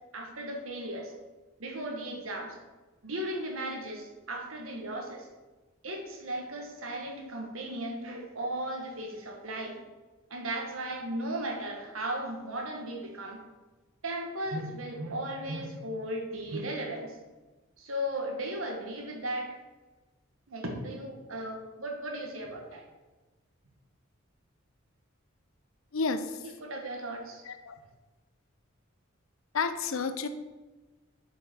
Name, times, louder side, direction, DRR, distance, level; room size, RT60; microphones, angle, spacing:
voice 1, 0.1-1.1 1.6-2.6 3.0-5.3 5.8-9.8 10.3-13.4 14.0-17.1 17.8-19.6 20.5-22.8 26.6-27.4, right 1 dB, 80° right, 1 dB, 1.5 m, -36 dB
voice 2, 25.9-26.5 27.4-27.7 29.5-30.3, left 4 dB, 75° left, 10 dB, 0.6 m, -31 dB
7.3 x 4.9 x 4.4 m, 1.2 s
head